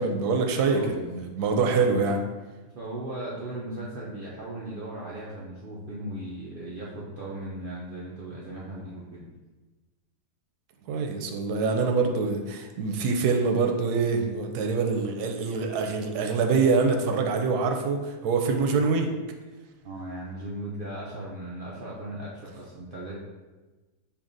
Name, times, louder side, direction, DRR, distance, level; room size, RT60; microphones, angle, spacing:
voice 1, 0.0-2.2 10.9-19.1, right 4 dB, 90° right, 4 dB, 1.1 m, -25 dB
voice 2, 2.8-9.3 19.8-23.2, right 1 dB, 60° right, -6 dB, 0.5 m, -37 dB
6.7 x 2.6 x 2.5 m, 1.2 s
omnidirectional pair, 1.6 m